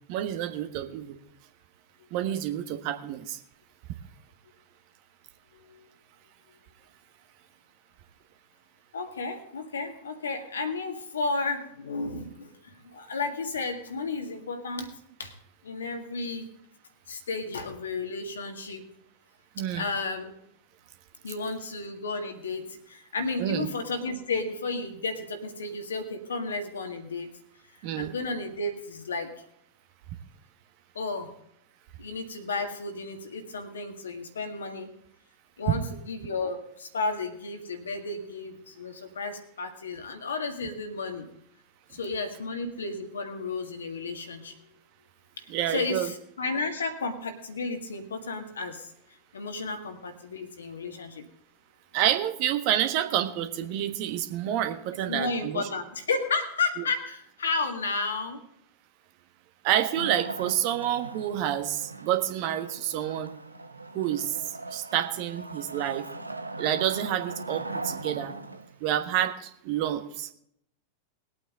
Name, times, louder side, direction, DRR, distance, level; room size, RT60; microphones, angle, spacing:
voice 1, 0.1-1.2 2.1-3.4 19.5-19.8 23.4-23.7 27.8-28.1 45.5-46.1 51.9-55.6 59.6-63.3 63.9-66.0 66.6-68.3 68.8-70.3, right 11 dB, 45° right, 8 dB, 1.3 m, -28 dB
voice 2, 5.5-5.9 8.9-15.3 15.6-16.5 17.1-18.9 19.7-20.3 21.2-27.3 28.0-29.3 30.9-31.3 32.0-34.9 35.6-41.3 41.9-44.6 45.4-48.9 49.3-51.3 55.0-58.4, left 3 dB, 70° left, 6 dB, 1.8 m, -33 dB
Wood, 59.9-68.8, right 2 dB, 85° right, 0.7 m, -40 dB
20.5 x 8.7 x 3.8 m, 0.72 s
figure-of-eight pair, 90°, 0 cm